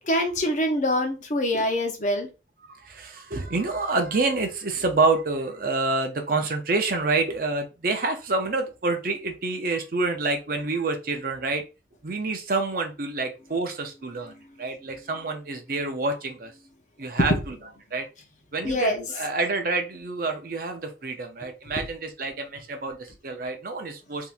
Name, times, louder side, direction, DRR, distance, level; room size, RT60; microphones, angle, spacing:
voice 1, 0.0-2.3 14.3-14.7 17.2-17.4 18.6-19.0, left 1 dB, 40° left, 4 dB, 0.7 m, -25 dB
voice 2, 2.7-11.6 12.0-16.5 17.0-17.6 17.9-18.1 18.5-24.3, right 3 dB, 50° right, 5 dB, 0.6 m, -27 dB
3.5 x 2.8 x 2.5 m, 0.29 s
head